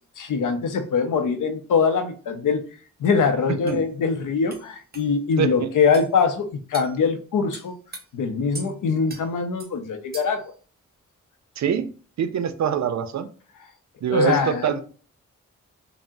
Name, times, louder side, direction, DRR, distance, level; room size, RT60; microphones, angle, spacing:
voice 1, 0.2-2.6 3.0-7.8 8.1-10.5 14.1-14.8, left 5 dB, 80° left, 8 dB, 0.6 m, -23 dB
sound 1, 3.0-3.1 3.7-3.8 4.5-4.6 4.9-5.1 5.9-6.1 6.7-6.9 7.5-8.0 8.5-8.7 9.1-9.2 9.6-9.7 10.1-10.4, right 3 dB, 30° right, 0.8 m, -39 dB
voice 2, 5.4-5.7 11.6-11.9 12.2-13.3 14.0-14.8, right 7 dB, 60° right, 10 dB, 0.4 m, -24 dB
3.6 x 2.0 x 2.6 m, 0.40 s
cardioid pair, 40°, 31 cm